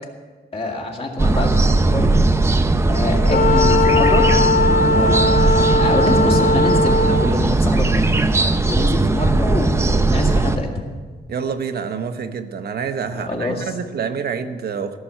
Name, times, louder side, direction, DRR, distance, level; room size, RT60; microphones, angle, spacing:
voice 1, 0.5-2.1 2.9-4.3 4.8-8.0 8.6-10.7 13.1-13.7, left 2 dB, 30° left, 0 dB, 2.1 m, -25 dB
sound 1, 1.2-10.6, right 2 dB, 15° right, 0.5 m, -18 dB
Wind instrument woodwind instrument, 3.3-7.4, left 2 dB, 50° left, 0.8 m, -18 dB
voice 2, 11.3-15.0, right 6 dB, 60° right, 7 dB, 0.9 m, -27 dB
16.0 x 6.9 x 8.9 m, 1.5 s
wide cardioid pair, 175°, 18 cm